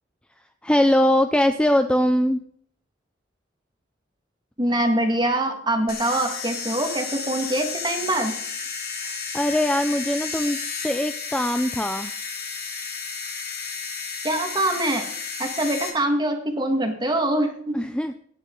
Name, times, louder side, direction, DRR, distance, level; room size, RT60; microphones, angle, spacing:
voice 1, 0.6-2.4 9.3-10.6 10.8-12.1 17.7-18.1, left 1 dB, 5° left, 7 dB, 0.5 m, -21 dB
voice 2, 4.6-8.4 14.2-15.1 15.4-17.8, right 1 dB, 20° right, 5 dB, 1.9 m, -24 dB
sound 1, 5.9-15.9, left 5 dB, 50° left, 2.7 m, -32 dB
18.0 x 9.5 x 3.9 m, 0.65 s
head